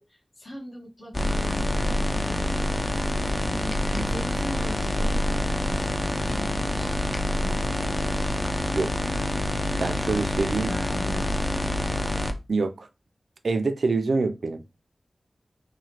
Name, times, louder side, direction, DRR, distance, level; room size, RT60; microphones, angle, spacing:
voice 1, 0.0-2.5 3.5-6.0 6.4-7.8 10.1-11.7, left 1 dB, 60° left, 1.1 m, -41 dB
sound 1, 1.1-12.3, left 1 dB, 25° left, 0.4 m, -26 dB
voice 2, 9.8-10.7 12.5-12.9 13.4-14.6, right 3 dB, 85° right, 0.3 m, -25 dB
2.9 x 2.1 x 2.8 m
wide cardioid pair, 60°, 0 cm